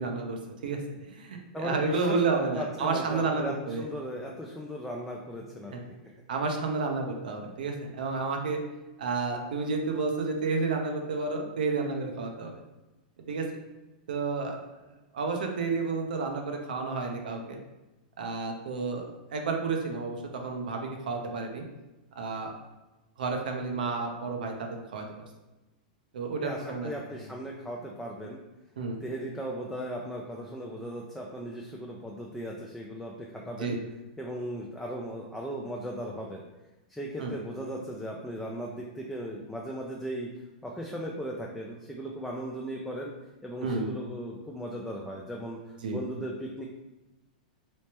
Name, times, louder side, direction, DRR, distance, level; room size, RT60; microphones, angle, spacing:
voice 1, 0.0-3.8 5.7-5.8 6.3-8.6 9.0-12.6 13.3-13.5 14.1-14.6 15.1-17.6 18.2-20.2 20.4-21.6 22.2-22.5 23.2-25.2 26.1-26.9 28.8-29.0 33.6-33.8 37.2-37.3 43.6-43.9 45.8-46.0, right 4 dB, 85° right, 3 dB, 0.7 m, -31 dB
voice 2, 1.5-5.8 26.4-28.4 29.0-33.8 34.2-36.4 36.9-40.3 40.6-43.1 43.4-46.6, equal, 5° left, -2 dB, 0.3 m, -37 dB
3.2 x 3.2 x 2.9 m, 1.0 s
supercardioid pair, 145°, 5 cm